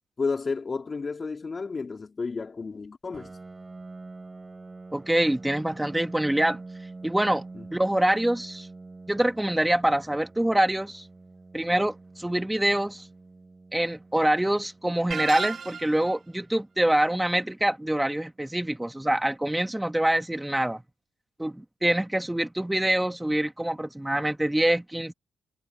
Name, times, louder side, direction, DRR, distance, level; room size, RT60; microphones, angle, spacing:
voice 1, 0.2-3.3 7.5-7.6, left 4 dB, 40° left, 3.8 m, -31 dB
Piano, 3.1-18.6, right 3 dB, 30° right, 3.8 m, -46 dB
voice 2, 4.9-6.6 7.0-7.4 7.7-8.7 9.1-11.0 11.5-13.1 13.7-20.8 21.4-25.1, right 1 dB, 10° right, 2.4 m, -25 dB
sound 1, 15.1-16.1, right 6 dB, 55° right, 4.1 m, -33 dB
supercardioid pair, 60°, 0 cm